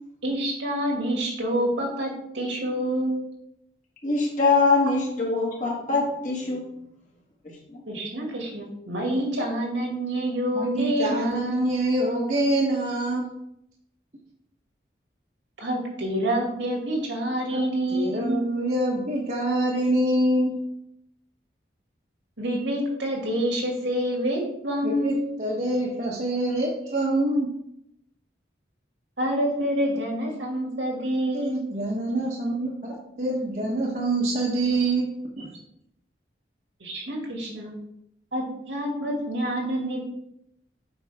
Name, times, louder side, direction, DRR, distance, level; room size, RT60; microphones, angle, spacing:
voice 1, 0.2-3.2 7.9-11.8 15.6-18.4 22.4-25.3 29.2-31.6 36.8-37.7 38.3-40.1, equal, 85° right, -1 dB, 2.3 m, -27 dB
voice 2, 4.0-6.6 7.7-7.8, left 4 dB, 45° left, -3 dB, 1.9 m, -23 dB
voice 3, 10.5-13.3 17.5-17.6 17.9-20.6 24.8-27.5 31.3-35.1 35.4-35.5, right 1 dB, 45° right, -4 dB, 1.1 m, -25 dB
8.0 x 5.3 x 3.5 m, 0.78 s
head